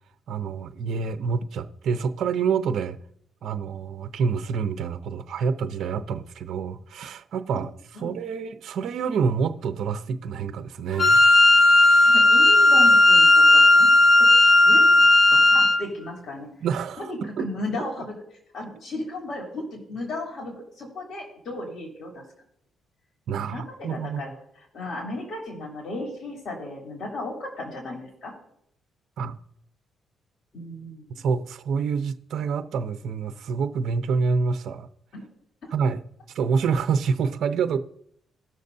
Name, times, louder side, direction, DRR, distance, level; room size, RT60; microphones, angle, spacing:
voice 1, 0.3-3.0 3.4-7.7 8.0-11.2 16.6-17.5 17.8-17.9 23.3-24.2 29.2-29.4 31.1-34.9 35.7-36.0 36.3-37.8, right 5 dB, 70° right, 0.6 m, -27 dB
Wind instrument woodwind instrument, 11.0-15.8, left 2 dB, 30° left, 0.8 m, -15 dB
voice 2, 12.0-13.9 14.2-14.8 15.3-16.5 17.0-18.1 18.5-22.2 23.4-24.3 24.7-28.3 30.5-31.2 35.1-35.2, left 2 dB, 60° left, 3.1 m, -35 dB
19.0 x 6.5 x 2.7 m
cardioid pair, 90°, 0 cm